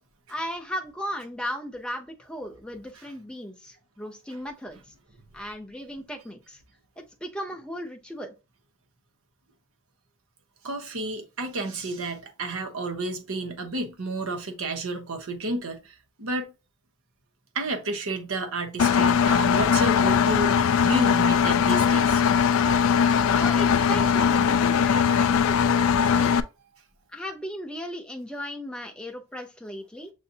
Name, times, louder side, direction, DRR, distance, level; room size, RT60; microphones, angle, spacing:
voice 1, 0.3-4.8 5.3-6.6 7.0-8.3 23.3-26.3 27.1-30.1, equal, 5° left, 0.6 m, -36 dB
voice 2, 10.6-16.5 17.5-20.5 20.8-22.2, right 2 dB, 75° right, 0.9 m, -31 dB
Engine, 18.8-26.4, left 7 dB, 65° left, 0.3 m, -20 dB
6.5 x 2.6 x 2.7 m
head